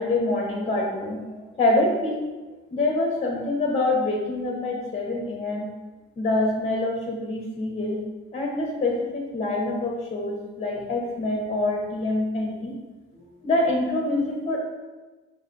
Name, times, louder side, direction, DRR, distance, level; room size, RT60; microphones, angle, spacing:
voice 1, 0.0-2.2 2.7-5.7 6.2-8.0 8.3-12.7 13.1-14.6, left 2 dB, 25° left, 0 dB, 0.7 m, -25 dB
4.8 x 2.3 x 3.7 m, 1.2 s
cardioid pair, 90°, 30 cm